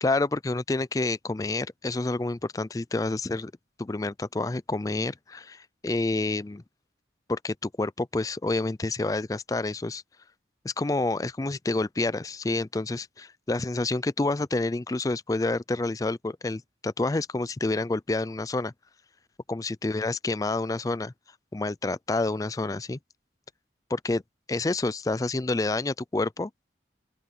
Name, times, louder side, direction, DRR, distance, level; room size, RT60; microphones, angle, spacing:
voice 1, 0.0-3.5 3.8-6.6 7.3-10.0 10.6-18.7 19.5-21.1 21.5-23.0 23.9-24.2 24.5-26.5, left 2 dB, 20° left, 0.3 m, -28 dB
open air
head